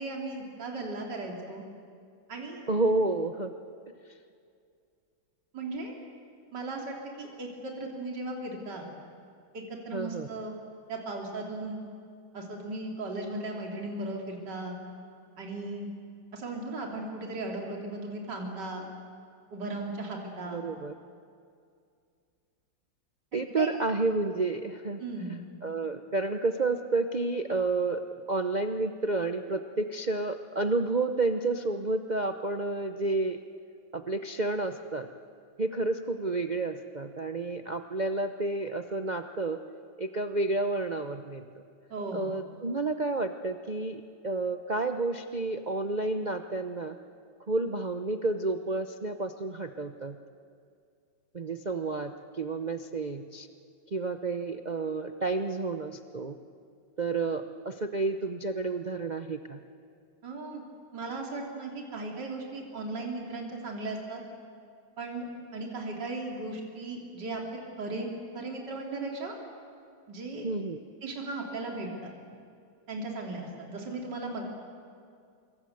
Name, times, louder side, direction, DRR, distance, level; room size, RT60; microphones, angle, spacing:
voice 1, 0.0-1.6 2.3-2.6 5.5-5.9 6.5-8.9 9.5-10.6 10.9-11.8 12.3-14.8 15.4-15.9 16.3-18.9 19.5-20.6 23.3-23.7 25.0-25.4 41.9-42.3 60.2-60.6 60.9-64.2 65.0-65.3 65.5-67.4 67.8-69.4 70.1-70.5 71.0-72.1 72.9-74.4, right 2 dB, 55° right, 0 dB, 3.6 m, -37 dB
voice 2, 2.7-3.5 9.9-10.3 20.5-20.9 23.3-25.0 25.6-28.0 28.3-33.4 33.9-35.1 35.6-39.6 40.0-41.4 42.1-47.0 47.5-50.2 51.3-52.1 52.4-53.5 53.9-56.3 57.0-59.6 70.4-70.8, right 3 dB, 85° right, 6 dB, 0.4 m, -30 dB
25.5 x 23.5 x 7.9 m, 2.3 s
omnidirectional pair, 2.2 m